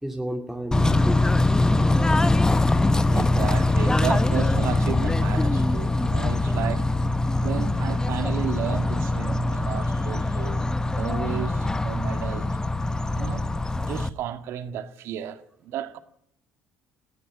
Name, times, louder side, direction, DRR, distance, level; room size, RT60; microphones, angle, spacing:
voice 1, 0.0-2.2, right 1 dB, 5° right, 2.4 m, -34 dB
Bird / Train, 0.7-14.1, left 2 dB, 15° left, 1.1 m, -23 dB
voice 2, 3.1-6.9 7.4-10.7 10.9-12.6 13.1-13.4 13.7-16.0, right 9 dB, 65° right, 1.7 m, -33 dB
19.0 x 15.5 x 9.9 m
hypercardioid pair, 60°, 5 cm